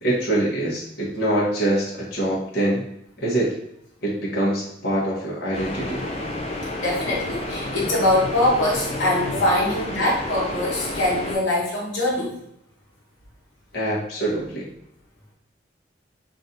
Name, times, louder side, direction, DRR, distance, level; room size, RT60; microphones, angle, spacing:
voice 1, 0.0-2.8 3.2-3.5 4.0-6.0 13.7-14.7, right 1 dB, 55° left, -6 dB, 1.2 m, -24 dB
sound 1, 5.5-11.4, left 1 dB, 35° left, 0.6 m, -30 dB
voice 2, 6.8-12.4, left 1 dB, 80° left, -5 dB, 1.2 m, -23 dB
5.2 x 2.6 x 2.7 m, 0.74 s
head